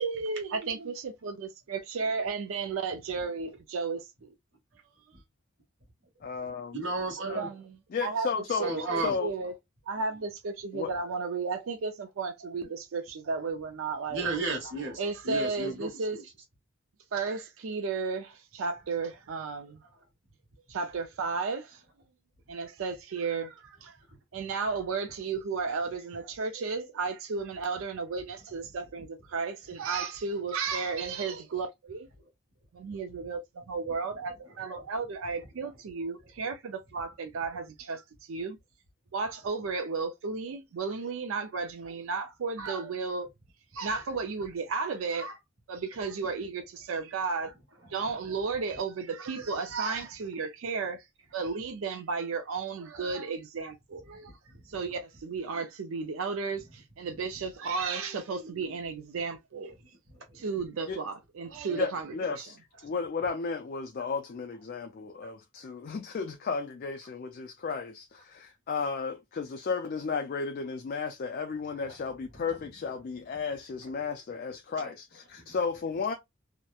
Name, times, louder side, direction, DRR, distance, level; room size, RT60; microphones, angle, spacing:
voice 1, 0.0-4.1 7.2-9.5 9.9-14.3 15.0-16.2 17.1-19.8 20.7-21.8 22.5-24.0 24.3-32.1 32.7-38.6 39.1-43.3 43.7-45.4 45.7-47.5 47.9-51.1 51.3-54.3 54.7-59.7 60.3-62.5, right 4 dB, 80° right, 0.4 m, -34 dB
voice 2, 6.2-6.8 7.9-8.7 9.0-9.3 10.7-10.9 60.9-61.0 61.7-62.6 62.8-76.1, left 5 dB, 45° left, 0.3 m, -33 dB
voice 3, 6.7-7.5 8.5-9.1 14.1-16.2 54.5-54.6 60.3-60.4 74.8-74.9, right 2 dB, 65° right, 1.0 m, -33 dB
2.9 x 2.0 x 2.2 m
head